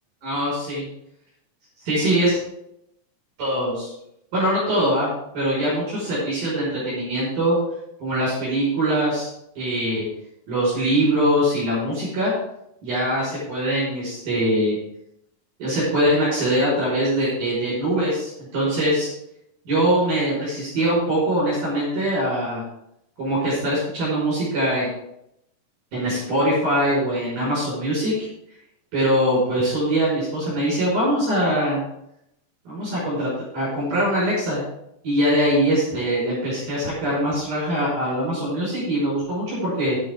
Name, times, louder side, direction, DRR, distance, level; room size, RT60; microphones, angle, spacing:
voice 1, 0.2-0.8 1.9-2.3 3.4-3.7 4.3-5.1 5.3-7.6 8.0-9.3 9.6-10.1 10.5-12.3 12.8-14.8 15.6-19.1 19.7-22.6 23.2-24.9 25.9-28.1 28.9-31.8 32.7-34.6 35.0-40.0, right 1 dB, 60° right, -7 dB, 7.0 m, -22 dB
11.5 x 11.0 x 3.7 m, 0.78 s
omnidirectional pair, 4.2 m